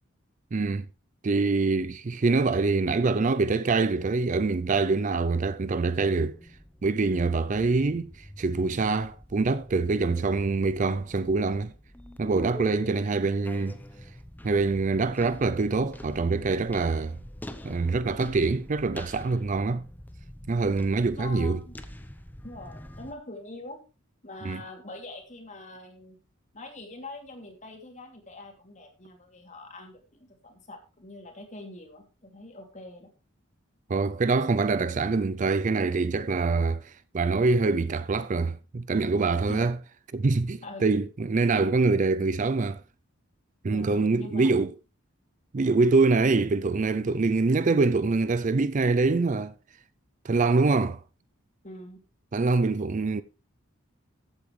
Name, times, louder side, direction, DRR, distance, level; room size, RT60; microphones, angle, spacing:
voice 1, 0.5-0.9 1.2-6.4 6.8-11.7 12.2-13.8 14.4-17.2 17.6-19.9 20.5-21.6 24.4-24.6 33.9-39.8 40.1-42.8 43.6-44.7 45.5-49.5 50.2-51.0 52.3-53.2, right 3 dB, 35° right, 0.4 m, -25 dB
sound 1, 6.3-23.1, equal, 10° left, 0.8 m, -45 dB
voice 2, 21.2-21.7 22.4-23.8 24.2-26.2 26.5-33.1 39.5-39.7 40.6-40.9 41.5-41.7 43.7-44.5 51.6-52.0, left 2 dB, 35° left, 2.9 m, -44 dB
14.5 x 8.6 x 3.2 m
head